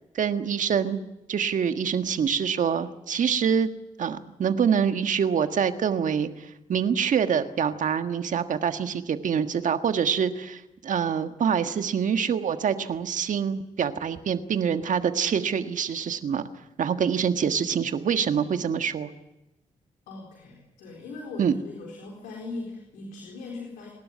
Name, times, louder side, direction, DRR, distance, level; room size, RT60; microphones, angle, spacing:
voice 1, 0.1-1.0 1.3-3.7 4.0-6.3 6.7-16.4 16.8-19.1 21.4-21.5, right 7 dB, 65° right, 8 dB, 1.6 m, -25 dB
voice 2, 20.1-23.9, left 3 dB, 90° left, -1 dB, 4.1 m, -39 dB
28.5 x 12.5 x 9.4 m, 0.94 s
supercardioid pair, 45°, 14 cm